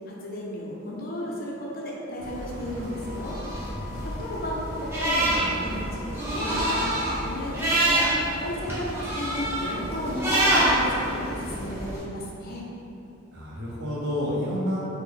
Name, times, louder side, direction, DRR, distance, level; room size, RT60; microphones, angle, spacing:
voice 1, 0.1-3.4 4.0-8.1 8.4-12.7, left 1 dB, 45° left, -3 dB, 0.4 m, -34 dB
Wind instrument woodwind instrument, 2.2-6.4, left 9 dB, 5° left, 1.3 m, -47 dB
sound 1, 2.2-12.0, right 1 dB, 10° right, 0.5 m, -27 dB
voice 2, 3.6-4.1 13.3-14.8, left 1 dB, 55° right, -5 dB, 0.6 m, -30 dB
3.3 x 2.1 x 3.6 m, 2.8 s
head